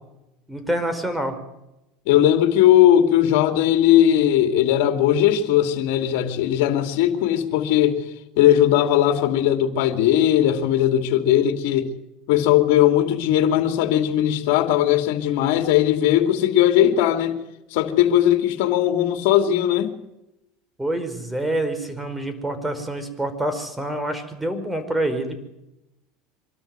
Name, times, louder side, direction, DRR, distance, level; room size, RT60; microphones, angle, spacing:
voice 1, 0.5-1.4 20.8-25.4, right 1 dB, 10° right, 4.9 m, -26 dB
voice 2, 2.1-8.0 8.4-11.9 12.3-17.3 17.7-20.0, left 11 dB, 70° left, 2.6 m, -18 dB
25.0 x 13.0 x 9.4 m
hypercardioid pair, 90°, 0 cm